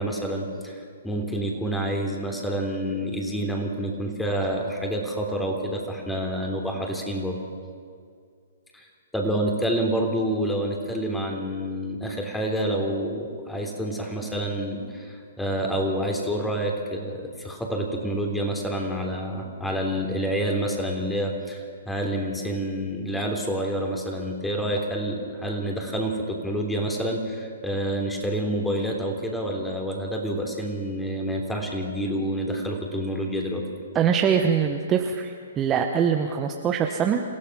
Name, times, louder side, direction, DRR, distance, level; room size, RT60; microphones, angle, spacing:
voice 1, 0.0-7.4 8.7-8.9 9.1-33.6, right 1 dB, 5° left, 1 dB, 3.4 m, -28 dB
voice 2, 33.9-37.2, right 7 dB, 20° right, 4 dB, 1.2 m, -23 dB
27.5 x 16.0 x 6.2 m, 2.2 s
figure-of-eight pair, 125°, 0 cm